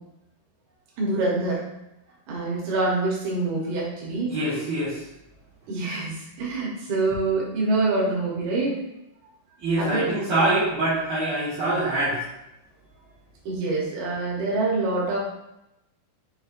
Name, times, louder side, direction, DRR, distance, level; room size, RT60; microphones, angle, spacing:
voice 1, 1.0-1.6 2.3-4.4 5.7-8.8 9.8-10.1 13.4-15.2, right 2 dB, 85° right, -4 dB, 1.6 m, -25 dB
voice 2, 4.3-5.0 9.6-12.2, right 2 dB, 60° right, -12 dB, 2.2 m, -24 dB
6.7 x 3.2 x 2.5 m, 0.89 s
omnidirectional pair, 4.8 m